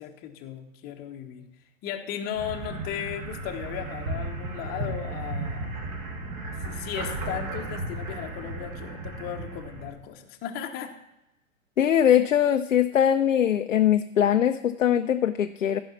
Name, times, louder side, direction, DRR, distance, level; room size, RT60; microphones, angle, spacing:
voice 1, 0.0-1.5 1.8-5.7 6.5-10.9, left 10 dB, 25° left, 3 dB, 1.0 m, -36 dB
sound 1, 2.3-9.9, right 2 dB, 35° right, 2.1 m, -34 dB
voice 2, 11.8-15.8, left 10 dB, 75° left, 7 dB, 0.6 m, -21 dB
14.5 x 5.6 x 5.6 m, 0.89 s
figure-of-eight pair, 110°, 40 cm